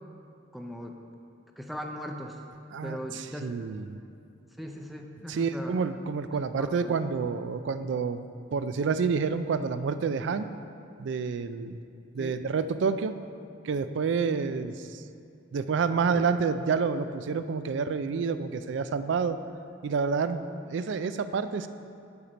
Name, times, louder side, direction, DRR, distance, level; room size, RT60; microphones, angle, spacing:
voice 1, 0.5-1.0 1.6-2.4 2.8-3.8 4.6-5.8 6.2-6.9 12.2-12.4 16.1-16.2, equal, ahead, 2 dB, 0.4 m, -39 dB
voice 2, 2.7-4.0 5.3-8.2 8.5-10.5 11.0-11.8 12.1-13.2 13.6-15.0 15.5-19.4 19.8-21.7, right 5 dB, 65° right, 11 dB, 0.4 m, -28 dB
7.1 x 6.6 x 5.1 m, 2.5 s
head